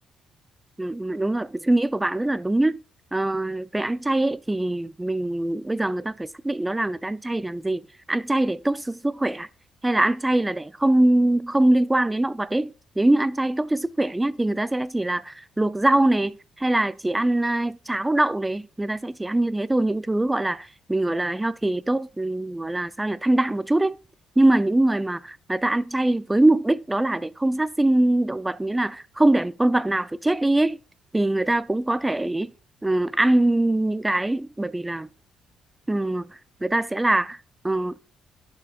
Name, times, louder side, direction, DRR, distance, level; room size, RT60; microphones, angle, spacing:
voice 1, 0.8-2.8 3.1-7.8 8.1-9.5 9.8-24.0 24.4-30.8 31.1-32.5 32.8-35.1 35.9-37.4 37.6-37.9, right 1 dB, 10° right, 0.4 m, -23 dB
11.0 x 6.7 x 2.4 m
cardioid pair, 90°, 0 cm